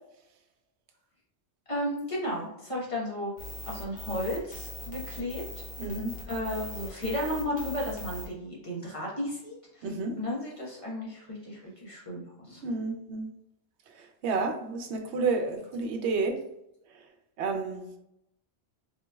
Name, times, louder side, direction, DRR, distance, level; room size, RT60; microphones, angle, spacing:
voice 1, 1.7-3.3 3.7-5.4 6.3-9.9 10.2-12.6, equal, 30° left, -5 dB, 1.0 m, -34 dB
sound 1, 3.4-8.3, left 2 dB, 10° left, 0.7 m, -41 dB
voice 2, 5.8-6.1 9.8-10.2 12.6-13.3 13.9-16.4 16.9-17.0 17.4-17.9, right 3 dB, 80° right, 4 dB, 0.9 m, -30 dB
3.9 x 3.0 x 2.2 m, 0.81 s
omnidirectional pair, 1.1 m